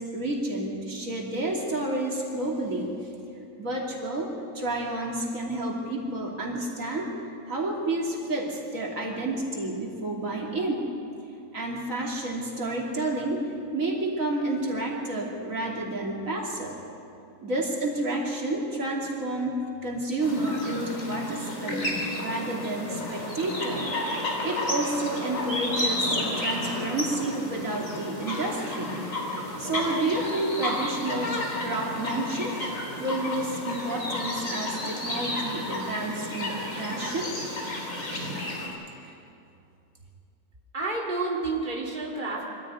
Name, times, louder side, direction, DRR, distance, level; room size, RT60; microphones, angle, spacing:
voice 1, 0.0-3.1 3.6-4.3 4.5-7.1 7.5-10.8 11.5-13.4 13.7-16.8 17.4-21.9 22.2-23.9 24.4-28.9 29.6-32.7 33.0-37.6 38.5-38.7 39.0-39.1, right 2 dB, 70° right, -1 dB, 3.3 m, -30 dB
sound 1, 20.2-38.7, left 1 dB, 65° left, 4.1 m, -32 dB
voice 2, 40.7-42.5, right 3 dB, 35° right, -2 dB, 2.6 m, -30 dB
24.0 x 15.0 x 9.6 m, 2.6 s
omnidirectional pair, 1.4 m